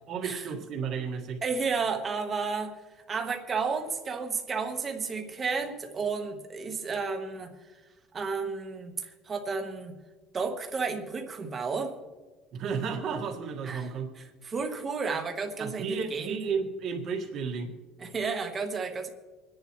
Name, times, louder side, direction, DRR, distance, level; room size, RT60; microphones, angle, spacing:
voice 1, 0.1-1.4 12.5-14.1 15.6-17.7, right 5 dB, 40° right, 2 dB, 1.7 m, -33 dB
voice 2, 1.4-2.8 3.1-7.5 8.1-9.9 10.3-11.9 13.6-13.9 14.2-16.4 18.0-19.1, right 4 dB, 20° right, 5 dB, 1.3 m, -32 dB
26.0 x 10.5 x 3.1 m, 1.3 s
cardioid pair, 180°, 0 cm